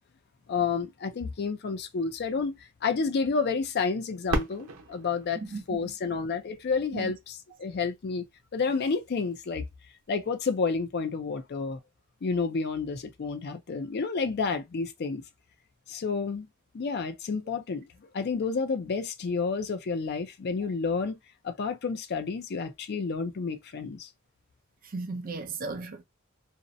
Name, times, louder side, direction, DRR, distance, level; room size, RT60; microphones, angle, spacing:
voice 1, 0.5-5.4 5.7-8.2 8.5-9.7 10.1-11.8 12.2-15.2 15.9-16.5 16.7-17.9 18.1-21.2 21.4-24.1, left 4 dB, 50° left, 0.4 m, -30 dB
Fireworks, 4.3-7.0 7.7-7.8 8.5-9.0 10.9-11.0, right 2 dB, 90° right, 0.8 m, -35 dB
voice 2, 5.3-5.9 6.9-7.1 24.8-26.0, right 3 dB, 40° right, 0.5 m, -36 dB
2.5 x 2.0 x 2.5 m
head